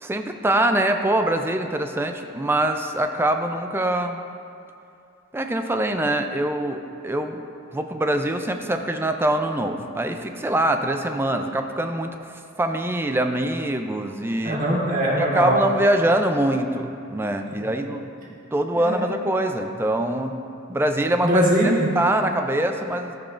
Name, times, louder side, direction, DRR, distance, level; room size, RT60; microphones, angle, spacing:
voice 1, 0.0-4.2 5.3-7.4 7.7-14.6 15.2-20.4 20.7-21.4 22.0-23.2, right 1 dB, 10° right, 6 dB, 0.3 m, -24 dB
voice 2, 14.4-15.6 18.7-19.0 21.2-21.9, right 1 dB, 40° right, -4 dB, 1.4 m, -21 dB
14.0 x 5.5 x 2.5 m, 2.6 s
head